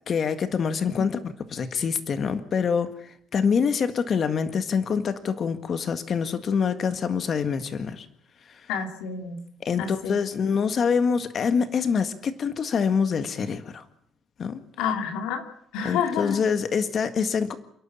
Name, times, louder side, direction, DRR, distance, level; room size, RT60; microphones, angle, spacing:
voice 1, 0.1-8.1 9.6-13.8 14.4-14.6 15.8-17.5, left 6 dB, 35° left, 10 dB, 1.8 m, -25 dB
voice 2, 8.7-9.4 9.8-10.2 14.8-15.4 15.7-16.4, left 7 dB, 85° left, 6 dB, 2.9 m, -28 dB
28.5 x 11.5 x 8.9 m, 0.70 s
cardioid pair, 145°, 0 cm